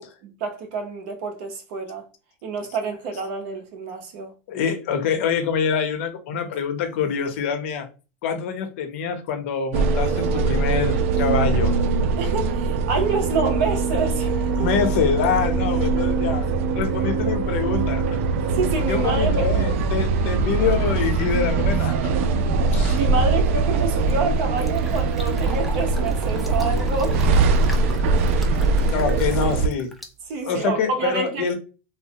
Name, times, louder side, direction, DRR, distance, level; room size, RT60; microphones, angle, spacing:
voice 1, 0.2-2.1 2.4-4.3 12.2-14.7 18.5-19.7 22.5-27.2 30.3-31.5, right 4 dB, 55° right, 0.7 m, -27 dB
voice 2, 4.5-7.9 8.2-11.7 14.6-16.4 16.7-18.0 18.9-23.0 28.9-29.9 30.4-31.6, left 6 dB, 70° left, 0.7 m, -25 dB
sound 1, 9.7-29.7, right 4 dB, 75° right, 0.4 m, -22 dB
Fill (with liquid), 23.8-30.9, equal, ahead, 0.3 m, -41 dB
3.1 x 2.1 x 2.7 m
supercardioid pair, 165°, 7 cm